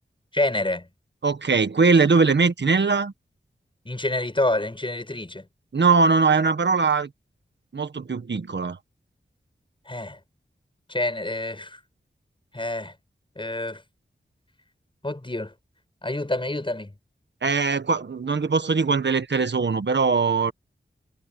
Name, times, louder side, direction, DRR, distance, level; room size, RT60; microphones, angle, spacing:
voice 1, 0.3-0.9 3.8-5.4 9.9-10.2 10.9-11.8 12.5-12.9 13.4-13.8 15.0-15.5 16.0-16.9, left 1 dB, 25° left, 6.7 m, -27 dB
voice 2, 1.2-3.1 5.7-7.1 7.7-8.8 17.4-20.5, right 4 dB, 65° right, 1.5 m, -21 dB
wide cardioid pair, 55°, 20 cm